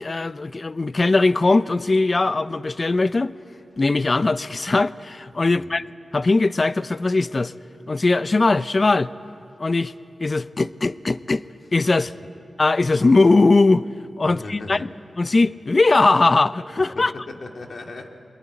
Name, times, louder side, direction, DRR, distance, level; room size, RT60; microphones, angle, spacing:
voice 1, 0.0-3.3 3.8-5.8 6.1-7.5 7.9-9.1 9.6-9.9 10.2-11.4 11.7-12.1 12.6-13.8 14.2-14.9 15.2-17.1, left 3 dB, 50° left, 0.6 m, -19 dB
voice 2, 14.2-14.9 16.9-18.1, left 3 dB, 75° left, 2.3 m, -37 dB
23.0 x 20.5 x 9.1 m
cardioid pair, 50°, 0 cm